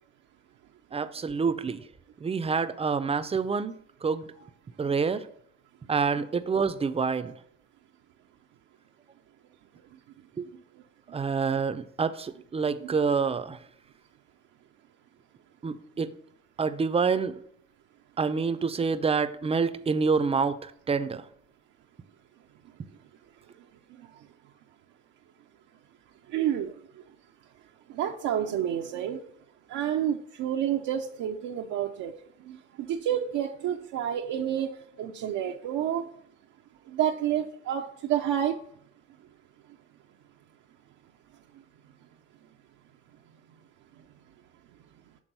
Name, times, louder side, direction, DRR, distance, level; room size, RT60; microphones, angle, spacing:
voice 1, 0.9-1.8 2.2-3.7 4.0-4.3 4.8-5.2 5.9-7.3 10.4-10.5 11.1-13.6 15.6-16.1 16.6-17.4 18.2-21.2, right 5 dB, 20° right, 12 dB, 0.4 m, -27 dB
voice 2, 26.3-26.7 27.9-29.2 29.7-32.1 32.5-34.7 35.0-36.0 36.9-38.6, right 10 dB, 80° right, 1 dB, 0.5 m, -29 dB
6.2 x 3.6 x 5.2 m, 0.66 s
cardioid pair, 90°, 30 cm